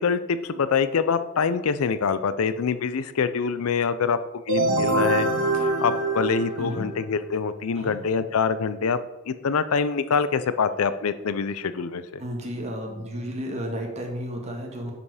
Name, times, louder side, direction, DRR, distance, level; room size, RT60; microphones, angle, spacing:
voice 1, 0.0-4.2 4.5-5.3 5.5-9.0 9.3-12.2, left 5 dB, 70° left, 13 dB, 0.5 m, -25 dB
sound 1, 4.5-7.2, right 2 dB, 65° right, 1.8 m, -24 dB
voice 2, 12.2-14.9, equal, 30° right, 1 dB, 1.6 m, -32 dB
10.5 x 5.1 x 4.8 m, 1.1 s
head